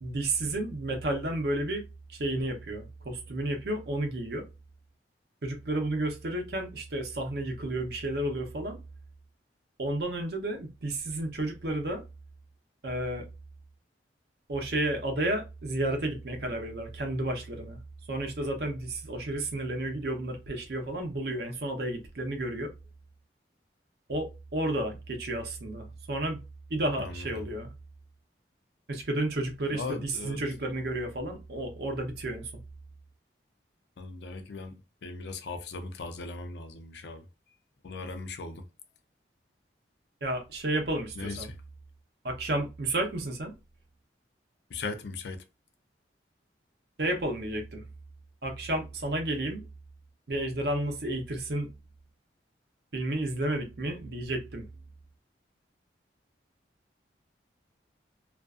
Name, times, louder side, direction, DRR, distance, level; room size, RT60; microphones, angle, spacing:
voice 1, 0.0-1.8 2.1-4.5 5.4-8.8 9.8-12.0 12.8-13.3 14.5-17.8 18.1-22.7 24.1-26.4 26.7-27.7 28.9-32.6 40.2-41.5 42.2-43.5 47.0-47.8 48.4-49.7 50.3-51.7 52.9-54.6, right 1 dB, 60° right, 0.7 m, -32 dB
voice 2, 27.0-27.4 29.7-30.4 34.0-34.8 35.0-37.3 37.8-38.6 41.2-41.6 44.7-45.4, left 3 dB, 65° left, 0.4 m, -38 dB
2.4 x 2.3 x 2.3 m
head